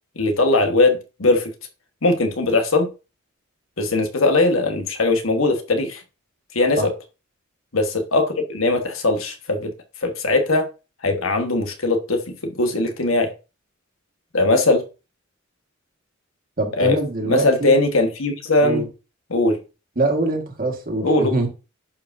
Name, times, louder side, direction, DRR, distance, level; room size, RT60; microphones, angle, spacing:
voice 1, 0.2-1.5 2.0-2.9 3.8-6.0 6.5-6.9 7.7-9.7 10.0-10.7 11.0-13.3 14.3-14.8 16.8-18.8 19.3-19.6 21.0-21.3, left 2 dB, 90° left, 1.4 m, -20 dB
voice 2, 16.6-17.7 18.6-18.9 19.9-21.5, right 2 dB, 45° right, 1.7 m, -23 dB
11.0 x 4.9 x 2.7 m
head